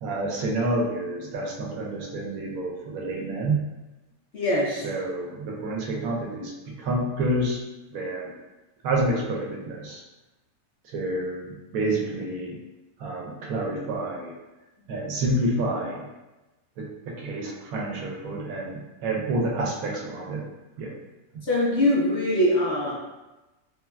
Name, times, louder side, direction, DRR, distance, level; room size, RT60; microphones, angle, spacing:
voice 1, 0.0-3.7 4.8-7.6 7.9-8.3 8.8-10.0 10.9-12.6 13.0-14.3 14.9-16.0 16.8-20.4 20.8-20.9, right 1 dB, 70° right, -2 dB, 1.0 m, -28 dB
voice 2, 4.3-4.9 21.5-22.9, left 1 dB, 70° left, -6 dB, 0.6 m, -22 dB
3.3 x 2.2 x 2.2 m, 1.1 s
omnidirectional pair, 1.7 m